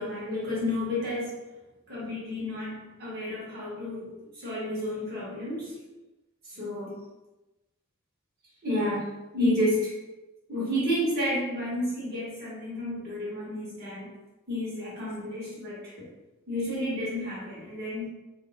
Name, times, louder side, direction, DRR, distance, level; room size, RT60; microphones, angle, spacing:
voice 1, 0.0-1.3 1.9-5.7 6.4-7.0 8.6-9.9 10.5-14.1 14.5-16.0 16.5-18.1, left 1 dB, 45° right, -7 dB, 1.1 m, -31 dB
2.5 x 2.1 x 3.0 m, 1.1 s
head